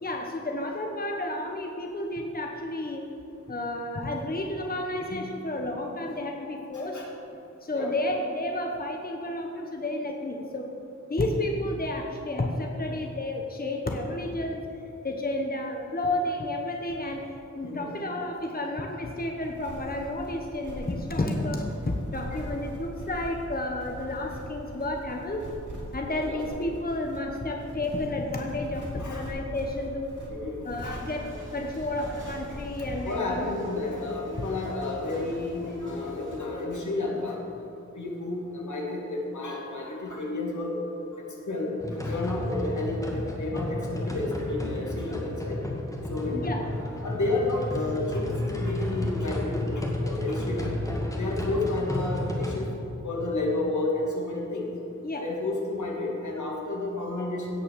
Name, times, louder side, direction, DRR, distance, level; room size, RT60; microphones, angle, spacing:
voice 1, 0.0-3.0 3.5-7.0 7.6-10.7 11.1-14.7 15.0-25.5 25.9-30.1 30.6-33.5 46.3-46.7 55.0-55.2, left 1 dB, 30° left, 2 dB, 1.0 m, -31 dB
voice 2, 6.7-7.1 7.7-7.9 17.6-17.9 22.3-22.4 26.3-26.4 29.0-29.2 30.3-31.1 33.0-37.4 38.0-40.7 41.1-41.7 42.0-45.6 46.1-46.7 47.0-50.9 51.2-52.7 53.0-54.7 55.2-57.6, left 2 dB, 80° left, -2 dB, 2.4 m, -31 dB
sound 1, 19.4-33.1, equal, 85° right, 2.8 m, -42 dB
sound 2, 30.8-36.4, equal, 40° right, 3.2 m, -44 dB
sound 3, 41.8-52.7, left 1 dB, 10° left, 2.0 m, -32 dB
16.5 x 6.0 x 6.7 m, 2.7 s
wide cardioid pair, 95°, 29 cm